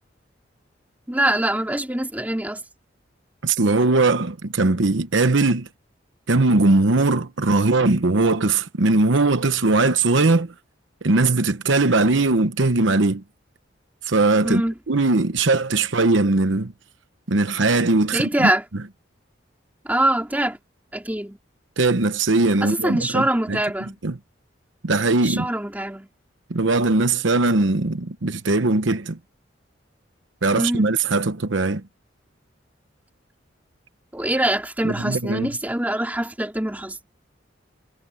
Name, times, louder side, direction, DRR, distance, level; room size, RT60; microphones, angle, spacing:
voice 1, 1.1-2.6 14.4-14.7 18.1-18.6 19.8-20.6 20.9-21.4 22.6-24.0 25.2-26.1 30.5-30.9 34.1-37.0, right 1 dB, 10° right, 2.9 m, -23 dB
voice 2, 3.4-5.7 6.3-10.5 11.0-13.2 14.0-14.6 14.9-16.7 17.3-18.5 21.8-23.6 24.0-24.2 24.8-25.5 26.5-29.2 30.4-31.8 34.8-35.5, right 3 dB, 75° right, 1.0 m, -20 dB
head